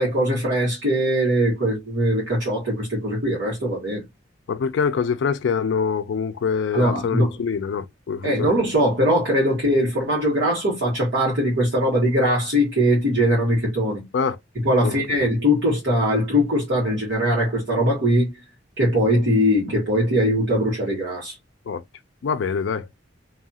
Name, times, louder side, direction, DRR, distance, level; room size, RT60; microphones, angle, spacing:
voice 1, 0.0-4.0 6.7-7.3 8.2-14.0 14.6-18.3 18.8-21.3, equal, 65° right, 1.4 m, -21 dB
voice 2, 4.5-8.5 14.1-14.4 14.8-14.9 21.7-21.8 22.2-22.9, left 6 dB, 65° left, 0.3 m, -24 dB
2.7 x 2.3 x 2.7 m
head